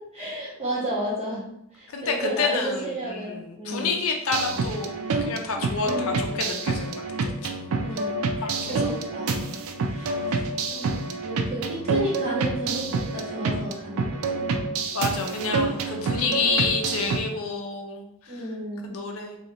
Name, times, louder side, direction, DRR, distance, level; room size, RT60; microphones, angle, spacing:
voice 1, 0.1-1.4 1.7-3.9 5.8-6.0 7.8-8.2 8.6-9.4 10.1-14.7 16.0-16.5 18.3-19.0, right 1 dB, 30° right, -8 dB, 1.4 m, -33 dB
voice 2, 1.9-7.5 8.4-8.9 9.9-10.2 14.9-18.4 18.8-19.4, left 4 dB, 70° left, 3 dB, 0.5 m, -29 dB
sound 1, 4.3-17.2, right 3 dB, 75° right, 0.4 m, -28 dB
3.2 x 2.7 x 2.8 m, 0.79 s
head